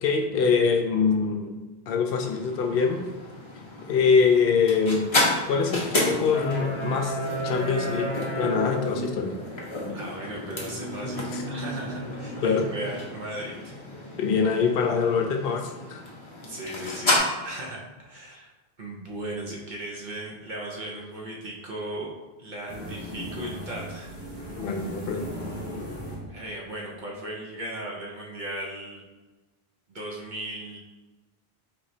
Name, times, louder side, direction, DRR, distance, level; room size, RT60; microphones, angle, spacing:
voice 1, 0.0-1.5 1.9-3.0 3.9-5.1 5.5-7.2 7.4-8.1 8.4-9.3 11.3-11.4 12.4-12.6 14.2-16.0 24.6-25.2, left 5 dB, 70° left, 3 dB, 0.7 m, -24 dB
sound 1, 2.1-17.2, left 1 dB, 35° left, 0.6 m, -31 dB
voice 2, 9.9-13.8 16.4-18.5 18.8-22.1 22.4-24.5 26.3-29.0 29.9-30.8, right 1 dB, 55° right, -3 dB, 0.8 m, -37 dB
sound 2, 22.7-27.3, equal, 25° right, 1.2 m, -38 dB
4.2 x 3.0 x 2.7 m, 1.2 s
omnidirectional pair, 1.0 m